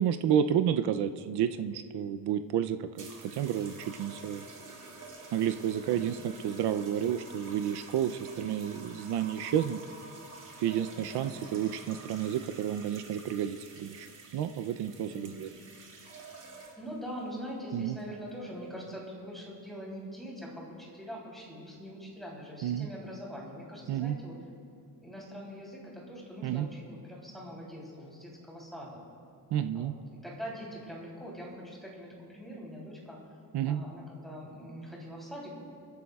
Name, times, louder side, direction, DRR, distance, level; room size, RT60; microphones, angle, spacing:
voice 1, 0.0-4.4 5.3-9.8 10.6-15.5 17.7-18.0 22.6-22.9 23.9-24.2 26.4-26.7 29.5-29.9 33.5-33.8, right 9 dB, 75° right, 9 dB, 0.6 m, -31 dB
sound 1, 3.0-17.0 17.9-18.2, right 3 dB, 50° right, 2.1 m, -49 dB
voice 2, 10.9-11.6 15.1-15.3 16.7-24.4 25.0-29.0 29.7-33.2 33.6-35.5, equal, ahead, -4 dB, 3.2 m, -43 dB
29.5 x 11.5 x 2.3 m, 2.6 s
wide cardioid pair, 160°, 40 cm